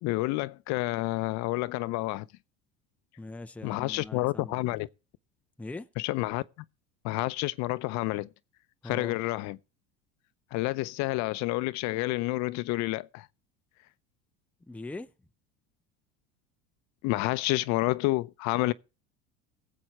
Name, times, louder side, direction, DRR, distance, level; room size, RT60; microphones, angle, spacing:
voice 1, 0.0-2.3 3.6-4.9 6.0-6.4 7.0-8.3 8.8-9.6 10.5-13.3 17.0-18.7, left 20 dB, 60° left, 0.7 m, -29 dB
voice 2, 3.2-4.8 5.6-5.9 8.8-9.2 14.7-15.3, left 2 dB, 5° left, 0.7 m, -42 dB
17.0 x 7.8 x 4.3 m
hypercardioid pair, 90°, 32 cm